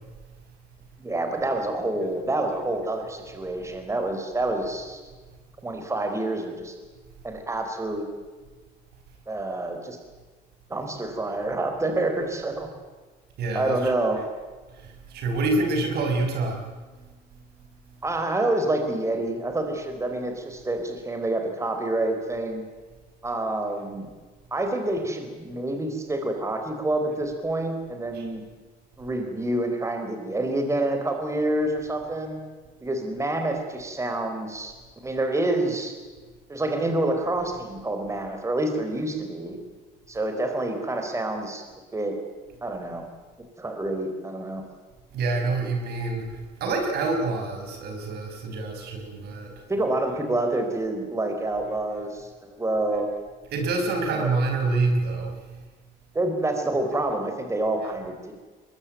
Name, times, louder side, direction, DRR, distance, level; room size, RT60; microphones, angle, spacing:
voice 1, 1.0-5.0 5.6-6.7 7.2-8.0 9.3-10.0 10.7-12.7 13.5-14.2 18.0-22.6 23.2-24.1 24.5-28.4 29.0-32.4 32.8-34.8 35.0-35.9 36.5-39.6 40.1-41.6 41.9-42.2 42.6-43.1 43.4-44.6 49.7-53.1 54.1-54.3 56.1-58.3, right 2 dB, 15° right, 5 dB, 4.1 m, -27 dB
voice 2, 13.4-13.8 14.8-16.6 28.1-28.3 45.1-46.3 46.6-49.5 53.5-55.3, right 3 dB, 70° right, 3 dB, 5.7 m, -26 dB
22.0 x 22.0 x 9.0 m, 1.3 s
cardioid pair, 110°, 17 cm